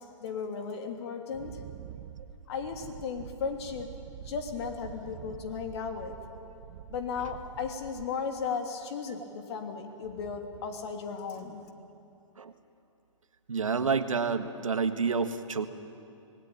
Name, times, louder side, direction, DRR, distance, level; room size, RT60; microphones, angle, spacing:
voice 1, 0.2-1.6 2.5-3.9 4.2-6.1 6.9-11.6, left 5 dB, 55° left, 4 dB, 3.0 m, -35 dB
Wind, 1.3-8.5, right 9 dB, 45° right, 1.2 m, -46 dB
voice 2, 13.5-15.7, right 5 dB, 80° right, 9 dB, 1.6 m, -29 dB
26.0 x 19.5 x 8.8 m, 2.7 s
figure-of-eight pair, 120°, 17 cm